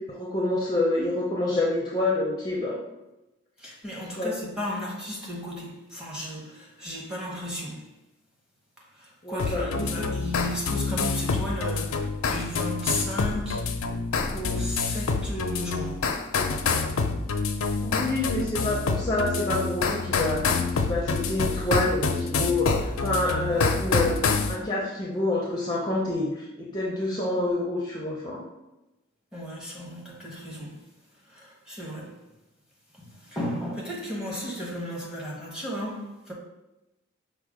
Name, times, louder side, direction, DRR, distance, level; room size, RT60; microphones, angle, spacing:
voice 1, 0.1-2.8 4.2-4.3 9.2-10.1 17.8-24.2 24.5-28.4, left 2 dB, 20° left, 0.5 m, -27 dB
voice 2, 3.6-7.9 8.8-13.7 14.3-16.6 29.3-32.2 32.9-36.3, equal, 5° right, 0.9 m, -35 dB
sound 1, 9.4-24.6, left 4 dB, 90° left, 0.5 m, -27 dB
5.3 x 2.1 x 4.7 m
head